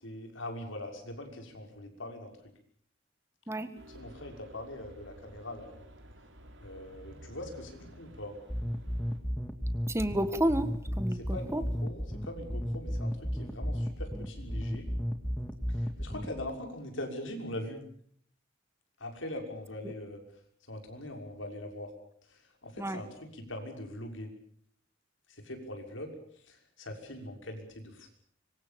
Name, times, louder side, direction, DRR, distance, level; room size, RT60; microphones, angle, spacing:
voice 1, 0.0-2.3 3.9-5.7 6.6-8.4 11.1-14.9 15.7-17.8 19.0-20.2 20.7-21.9 22.3-24.3 25.3-26.1 26.5-28.1, left 1 dB, 85° left, 4 dB, 6.2 m, -42 dB
sound 1, 3.7-9.2, equal, 75° right, 4.4 m, -52 dB
sound 2, 8.5-16.5, equal, 10° left, 2.1 m, -33 dB
voice 2, 9.9-11.6 22.8-23.0, right 1 dB, 15° right, 11 dB, 1.7 m, -30 dB
25.5 x 24.0 x 7.0 m, 0.63 s
head